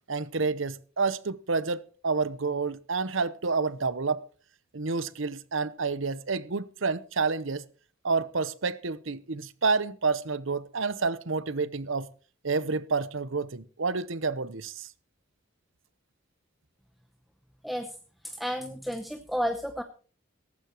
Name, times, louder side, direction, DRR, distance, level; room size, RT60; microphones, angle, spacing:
voice 1, 0.1-4.3 4.7-7.6 8.0-12.1 12.4-14.9, right 4 dB, 70° right, 0.9 m, -29 dB
voice 2, 17.6-18.0 18.2-19.8, equal, ahead, 0.8 m, -32 dB
17.5 x 14.5 x 3.0 m
head